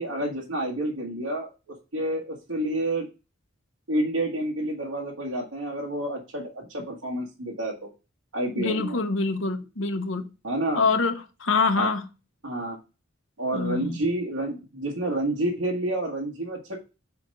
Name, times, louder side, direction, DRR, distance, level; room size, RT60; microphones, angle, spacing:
voice 1, 0.0-1.5 1.9-3.1 3.9-7.9 8.3-9.0 10.4-10.8 11.8-11.9 12.4-12.8 13.4-16.8, right 1 dB, 80° right, 1.6 m, -29 dB
voice 2, 8.6-10.3 10.7-12.0 13.5-14.0, left 4 dB, 65° left, 1.0 m, -25 dB
5.9 x 4.7 x 5.3 m
head